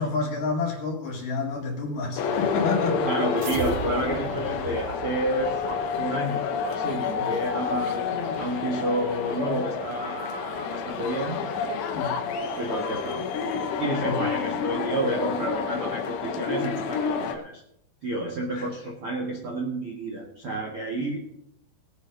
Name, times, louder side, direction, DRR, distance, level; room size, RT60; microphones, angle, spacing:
voice 1, 0.0-3.1 7.2-7.3 11.9-12.2 14.0-14.2 18.5-18.7 21.0-21.1, left 4 dB, 55° left, 0 dB, 3.4 m, -29 dB
sound 1, 2.2-17.4, left 6 dB, 80° left, 3.3 m, -29 dB
voice 2, 3.0-6.4 6.7-8.0 8.4-12.0 12.5-13.2 13.8-17.6 18.0-21.2, right 1 dB, 50° right, -2 dB, 1.7 m, -30 dB
sound 2, 3.4-6.1, right 7 dB, 85° right, 3.0 m, -37 dB
20.5 x 8.4 x 4.0 m, 0.75 s
omnidirectional pair, 5.0 m